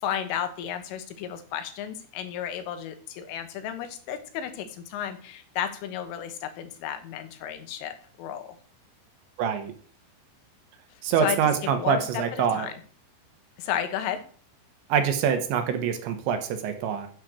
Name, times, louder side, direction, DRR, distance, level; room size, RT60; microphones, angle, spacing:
voice 1, 0.0-8.6 11.2-11.4 11.8-12.8 13.6-14.2, left 10 dB, 80° left, 9 dB, 3.8 m, -33 dB
voice 2, 9.4-9.7 11.0-12.7 14.9-17.1, right 7 dB, 75° right, 7 dB, 3.2 m, -25 dB
9.8 x 8.2 x 6.4 m, 0.43 s
omnidirectional pair, 5.7 m